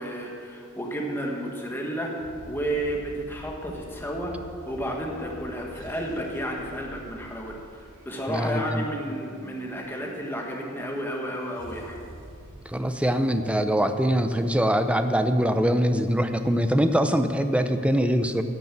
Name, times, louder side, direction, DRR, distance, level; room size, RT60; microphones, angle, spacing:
voice 1, 0.0-4.3 4.7-7.5 8.0-12.0, equal, 10° left, 0 dB, 1.5 m, -32 dB
sound 1, 2.2-10.0 11.6-12.6, right 1 dB, 60° right, 0.9 m, -46 dB
voice 2, 8.3-8.8 12.7-18.4, equal, 5° right, 8 dB, 0.5 m, -23 dB
12.0 x 6.8 x 8.4 m, 2.4 s
head